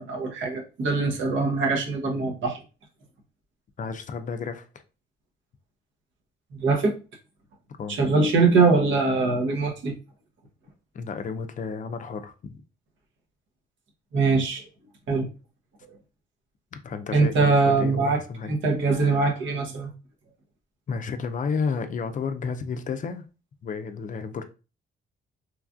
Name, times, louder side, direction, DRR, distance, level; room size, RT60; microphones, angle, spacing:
voice 1, 0.0-2.6 6.5-6.9 8.0-9.9 14.1-14.6 15.1-15.3 17.1-18.2 18.5-19.9, right 4 dB, 75° right, 0.9 m, -22 dB
voice 2, 3.8-4.7 7.8-8.1 10.9-12.6 16.7-18.5 20.9-23.2 23.6-24.4, left 5 dB, 40° left, 0.4 m, -32 dB
3.1 x 2.4 x 2.3 m
cardioid pair, 90°, 20 cm